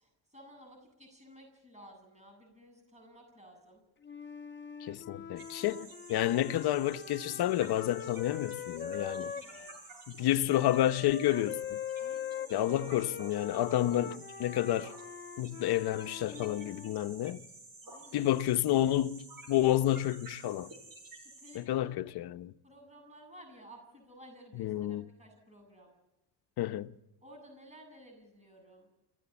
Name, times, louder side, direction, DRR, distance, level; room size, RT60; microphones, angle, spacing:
voice 1, 0.0-3.8 5.6-5.9 9.0-9.8 10.2-10.4 12.0-12.8 17.8-18.3 21.4-21.9 22.6-25.9 27.2-28.9, equal, 15° right, 7.9 m, -55 dB
Wind instrument woodwind instrument, 4.0-9.8 10.5-17.0, left 8 dB, 25° left, 1.1 m, -42 dB
voice 2, 4.8-9.3 10.1-11.8 12.5-14.9 15.4-17.4 18.1-20.7 21.5-22.5 24.5-25.0 26.6-26.9, left 13 dB, 60° left, 1.0 m, -30 dB
sound 1, 5.4-21.6, right 3 dB, 50° right, 7.7 m, -52 dB
29.5 x 16.0 x 7.1 m
cardioid pair, 120°, 42 cm